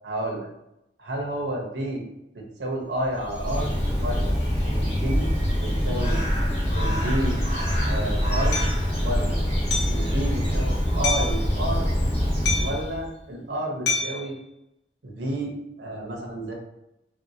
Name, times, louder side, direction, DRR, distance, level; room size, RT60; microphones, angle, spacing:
voice 1, 0.0-0.5 1.0-2.0 2.3-3.7 4.0-4.3 4.6-5.3 5.6-6.2 6.7-7.4 7.9-8.6 9.0-9.4 9.9-11.9 12.6-14.4 15.0-16.5, right 1 dB, 80° right, -1 dB, 0.8 m, -30 dB
Bird, 3.0-13.1, equal, 35° left, 1.0 m, -24 dB
Hammer, 8.5-8.7 9.7-10.0 11.0-11.4 12.5-12.9 13.9-14.2, left 4 dB, 75° left, 0.7 m, -26 dB
3.1 x 2.7 x 2.7 m, 0.86 s
head